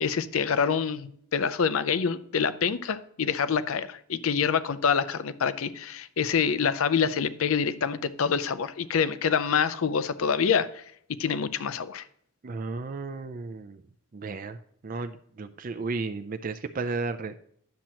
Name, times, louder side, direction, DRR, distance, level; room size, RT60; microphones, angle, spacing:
voice 1, 0.0-10.8 11.2-12.0, left 6 dB, 70° left, 15 dB, 0.5 m, -26 dB
voice 2, 12.4-13.8 14.1-14.6 14.8-17.3, right 3 dB, 40° right, 7 dB, 0.4 m, -33 dB
10.5 x 7.4 x 2.9 m, 0.66 s
head